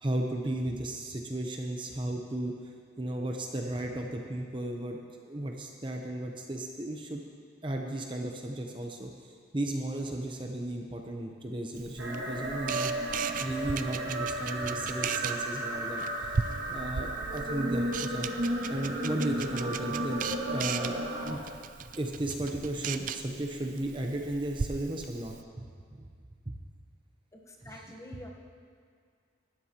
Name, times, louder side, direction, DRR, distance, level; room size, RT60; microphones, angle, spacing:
voice 1, 0.0-5.0 5.2-7.2 7.6-16.3 16.7-18.3 18.7-20.2 20.5-21.0 21.2-21.4 22.0-25.6 26.0-26.1, right 1 dB, 25° right, 2 dB, 0.8 m, -35 dB
Camera, 11.8-25.4, right 6 dB, 45° right, 0.4 m, -38 dB
sound 1, 12.0-21.4, right 1 dB, 70° right, 1.9 m, -34 dB
voice 2, 27.3-28.3, left 1 dB, 15° left, 0 dB, 1.1 m, -47 dB
18.5 x 12.5 x 2.9 m, 2.2 s
head